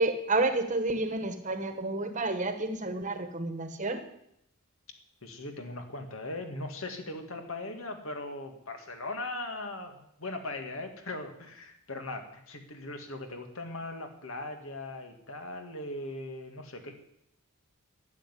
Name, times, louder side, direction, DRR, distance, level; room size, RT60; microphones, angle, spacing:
voice 1, 0.0-4.0, right 2 dB, 35° right, 8 dB, 1.4 m, -30 dB
voice 2, 5.2-17.0, left 2 dB, 70° left, 5 dB, 2.2 m, -39 dB
12.0 x 7.7 x 10.0 m, 0.78 s
head